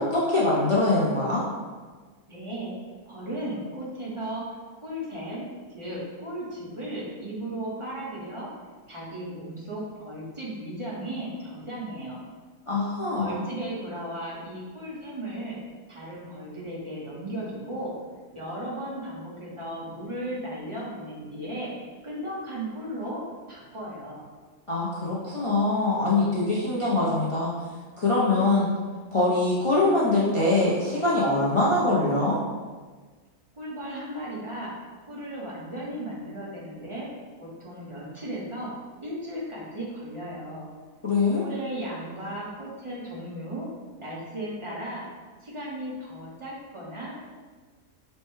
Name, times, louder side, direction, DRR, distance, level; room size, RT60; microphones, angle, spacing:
voice 1, 0.0-1.4 12.7-13.3 24.7-27.5 28.0-28.7 29.1-32.4 41.0-41.4, left 2 dB, 50° left, -8 dB, 0.4 m, -23 dB
voice 2, 2.3-2.7 3.1-8.5 8.9-12.2 13.1-15.6 15.9-17.9 18.3-21.7 22.0-23.2 23.5-24.2 33.5-34.7 35.0-37.1 37.4-38.7 39.0-40.7 41.4-43.7 44.0-45.0 45.4-47.2, right 1 dB, 25° right, -6 dB, 0.7 m, -36 dB
5.4 x 2.2 x 3.1 m, 1.4 s
omnidirectional pair, 1.5 m